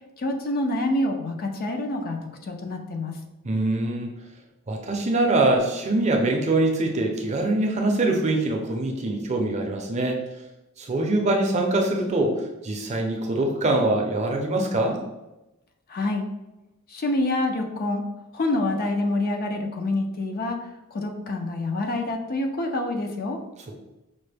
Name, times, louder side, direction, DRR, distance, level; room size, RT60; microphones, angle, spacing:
voice 1, 0.2-3.2 15.9-16.2 16.9-18.1 18.3-23.4, left 2 dB, 45° left, 3 dB, 0.4 m, -27 dB
voice 2, 3.4-4.1 4.7-10.2 10.8-15.0, right 2 dB, 30° right, 1 dB, 0.5 m, -23 dB
5.2 x 2.1 x 3.3 m, 0.97 s
head